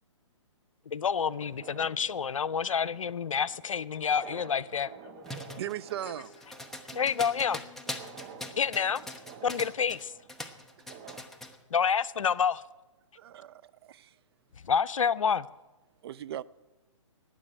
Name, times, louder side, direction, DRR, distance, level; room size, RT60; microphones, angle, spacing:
voice 1, 0.9-4.9 6.9-7.6 8.6-9.0 9.4-10.1 11.7-12.6 14.6-15.5, left 7 dB, 85° left, 0.6 m, -28 dB
sound 1, 1.2-11.2, right 8 dB, 30° right, 1.1 m, -51 dB
voice 2, 3.9-5.6 6.0-6.7 8.2-8.6, left 6 dB, 35° left, 2.3 m, -52 dB
sound 2, 5.2-10.0 10.3-11.6, left 1 dB, ahead, 1.0 m, -41 dB
voice 3, 5.6-6.3 10.8-10.9 13.2-14.2 16.0-16.4, right 12 dB, 50° right, 0.5 m, -38 dB
sound 3, 6.9-10.3, left 4 dB, 80° right, 3.9 m, -55 dB
19.0 x 7.6 x 8.9 m
hypercardioid pair, 135°, 16 cm